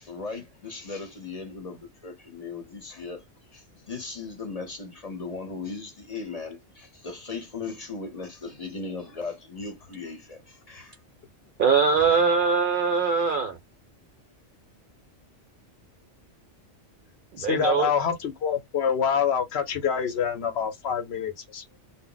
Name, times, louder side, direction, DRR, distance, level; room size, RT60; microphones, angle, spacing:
voice 1, 0.0-3.2 3.5-11.0, left 4 dB, 40° left, 0.7 m, -37 dB
voice 2, 11.6-13.6 17.4-17.9, right 5 dB, 60° right, 0.6 m, -22 dB
voice 3, 17.4-21.8, left 7 dB, 65° left, 0.8 m, -26 dB
2.1 x 2.0 x 3.8 m
omnidirectional pair, 1.2 m